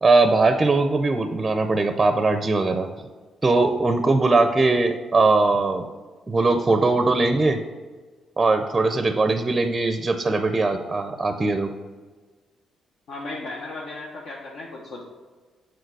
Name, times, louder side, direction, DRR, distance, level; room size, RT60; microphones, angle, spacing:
voice 1, 0.0-2.9 3.4-5.8 6.3-7.6 8.4-11.7, right 3 dB, 25° right, 7 dB, 0.5 m, -20 dB
voice 2, 13.1-15.0, left 2 dB, 70° left, -3 dB, 1.1 m, -35 dB
6.5 x 4.6 x 4.7 m, 1.4 s
cardioid pair, 110°, 0 cm